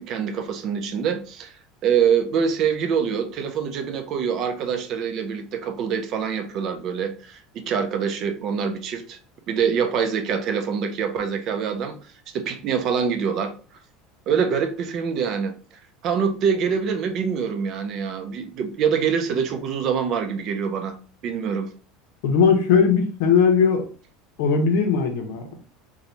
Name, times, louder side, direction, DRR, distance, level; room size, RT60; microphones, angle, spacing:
voice 1, 0.0-1.5 1.8-9.2 9.5-12.0 12.3-13.5 14.3-15.5 16.0-21.0 21.2-21.7, right 7 dB, 40° right, 0.5 m, -25 dB
voice 2, 22.2-23.9 24.4-25.6, left 6 dB, 75° left, 0.9 m, -19 dB
3.0 x 2.2 x 3.9 m
supercardioid pair, 150°, 0 cm